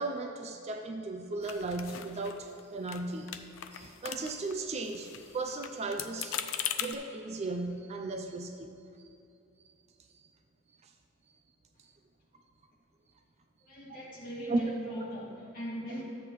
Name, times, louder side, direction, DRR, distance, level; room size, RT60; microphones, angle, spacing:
voice 1, 0.0-3.5 3.7-6.4 6.8-8.9 14.5-14.6, right 2 dB, 30° right, 5 dB, 0.4 m, -36 dB
sound 1, 1.4-2.6 2.9-3.0 3.3-4.5 4.8-6.9, left 10 dB, 70° left, 0.4 m, -39 dB
voice 2, 13.6-16.0, equal, 45° left, -6 dB, 2.2 m, -39 dB
11.5 x 8.2 x 3.1 m, 2.6 s
head